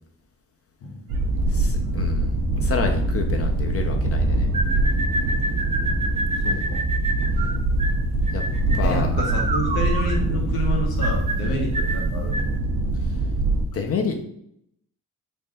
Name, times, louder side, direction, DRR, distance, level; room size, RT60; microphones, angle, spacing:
sound 1, 1.1-13.6, right 2 dB, 90° right, 0.6 m, -23 dB
voice 1, 1.5-4.5 8.3-8.4 8.7-9.1 11.4-11.6 13.0-13.1 13.7-14.2, left 5 dB, 40° left, 4 dB, 0.4 m, -29 dB
sound 2, 4.5-12.6, right 2 dB, 20° right, 0.3 m, -29 dB
voice 2, 6.4-6.8 8.8-12.4, left 1 dB, 90° left, 1 dB, 1.0 m, -29 dB
3.4 x 2.2 x 3.9 m, 0.72 s
cardioid pair, 110°, 35 cm